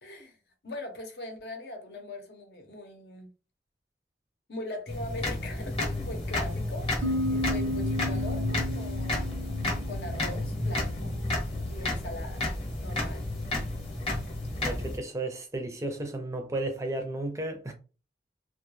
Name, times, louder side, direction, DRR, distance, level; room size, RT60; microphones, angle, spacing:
voice 1, 0.0-3.3 4.5-11.1 11.6-12.5 12.8-13.3, left 1 dB, 70° left, 0.7 m, -41 dB
sound 1, 4.9-15.0, left 2 dB, 35° left, 0.8 m, -31 dB
sound 2, 7.0-10.6, left 1 dB, 80° right, 0.5 m, -33 dB
voice 2, 14.6-17.7, right 2 dB, 20° right, 0.4 m, -33 dB
2.3 x 2.2 x 3.0 m
head